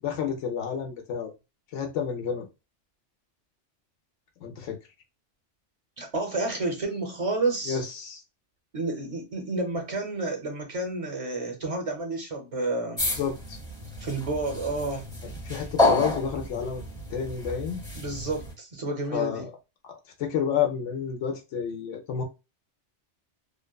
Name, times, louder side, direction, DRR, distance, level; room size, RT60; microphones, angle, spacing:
voice 1, 0.0-1.3 1.7-2.5 4.4-4.8 7.7-8.2 13.2-13.6 15.2-16.8 17.1-17.8 19.1-19.5 20.2-22.2, left 7 dB, 80° left, 0.9 m, -30 dB
voice 2, 6.0-7.8 8.7-13.0 14.0-15.1 17.9-19.5, right 2 dB, 40° right, 0.6 m, -30 dB
sound 1, 13.0-18.5, left 2 dB, 5° left, 0.6 m, -29 dB
2.8 x 2.2 x 2.2 m
omnidirectional pair, 1.2 m